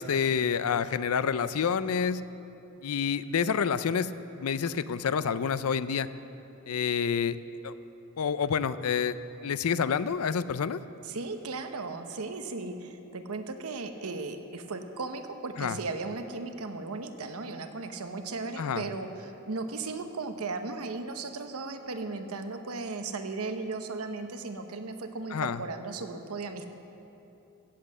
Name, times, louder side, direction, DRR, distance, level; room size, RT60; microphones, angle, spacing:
voice 1, 0.0-2.2 2.8-4.1 4.4-6.1 6.7-7.4 7.6-7.7 8.2-9.1 9.4-10.8 15.6-15.8 18.6-18.8 25.3-25.6, left 6 dB, 80° left, 15 dB, 0.5 m, -28 dB
voice 2, 11.0-26.7, right 3 dB, 85° right, 7 dB, 1.0 m, -36 dB
16.0 x 7.7 x 7.2 m, 3.0 s
head